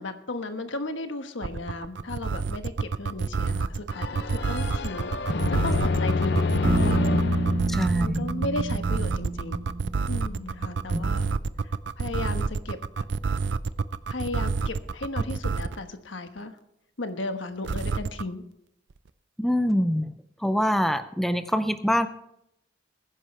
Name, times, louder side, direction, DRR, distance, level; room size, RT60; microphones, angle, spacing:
voice 1, 0.0-7.5 7.9-9.7 10.1-11.3 12.0-13.0 14.1-16.6 17.0-18.4, left 2 dB, 85° left, 7 dB, 1.3 m, -35 dB
sound 1, 1.4-15.8 17.6-18.2, right 4 dB, 70° right, 0.5 m, -27 dB
sound 2, 3.9-8.7, left 3 dB, 60° left, 0.6 m, -27 dB
Bass guitar, 6.6-10.7, right 3 dB, 35° right, 0.8 m, -30 dB
voice 2, 7.7-8.3 10.9-11.1 19.4-20.1 20.4-22.1, equal, ahead, 10 dB, 0.5 m, -25 dB
21.0 x 9.9 x 3.3 m, 0.78 s
head